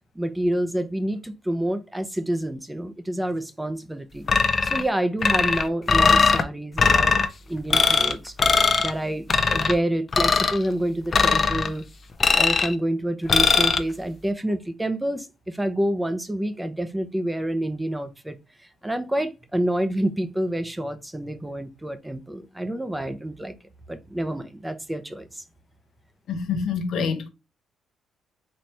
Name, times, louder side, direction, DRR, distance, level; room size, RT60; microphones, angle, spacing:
voice 1, 0.2-4.3 4.6-7.2 7.5-8.4 8.8-11.8 12.3-18.4 18.8-23.6 23.9-25.4, right 1 dB, 10° right, 0.7 m, -28 dB
sound 1, 4.3-4.9 5.2-6.4 6.8-7.3 7.7-8.1 8.4-8.9 9.3-9.7 10.1-10.6 11.1-11.7 12.2-12.7 13.3-13.8, left 4 dB, 40° left, 0.6 m, -19 dB
voice 2, 26.3-27.3, left 5 dB, 75° left, 0.8 m, -26 dB
4.3 x 3.1 x 3.1 m
cardioid pair, 90°, 0 cm